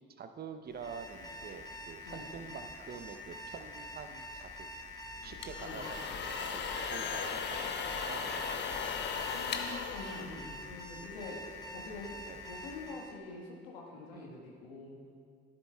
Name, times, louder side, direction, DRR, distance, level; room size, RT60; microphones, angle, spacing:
voice 1, 0.1-4.7 5.2-6.6 6.9-8.6 12.2-12.4 14.1-14.3, right 6 dB, 35° right, 8 dB, 0.7 m, -47 dB
Alarm, 0.7-13.2, left 1 dB, 15° left, 1.1 m, -46 dB
sound 1, 5.2-10.9, left 6 dB, 40° left, 0.7 m, -37 dB
voice 2, 5.6-5.9 9.3-11.4 11.7-12.2 12.5-15.1, left 3 dB, 70° left, -2 dB, 1.5 m, -45 dB
14.0 x 7.6 x 2.3 m, 2.1 s
figure-of-eight pair, 50°, 29 cm